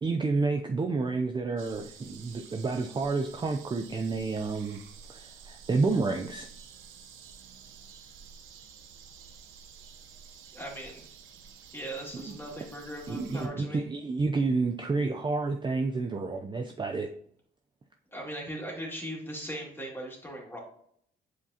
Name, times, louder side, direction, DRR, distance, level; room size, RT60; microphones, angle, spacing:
voice 1, 0.0-4.8 5.1-6.5 12.1-12.4 13.1-17.1, right 3 dB, 25° right, 4 dB, 0.5 m, -30 dB
sound 1, 1.6-13.5, right 6 dB, 85° right, 0.9 m, -50 dB
voice 2, 10.5-11.0 11.7-13.8 18.1-20.6, right 1 dB, 10° left, -1 dB, 2.3 m, -39 dB
8.1 x 4.7 x 2.8 m, 0.64 s
cardioid pair, 90°, 20 cm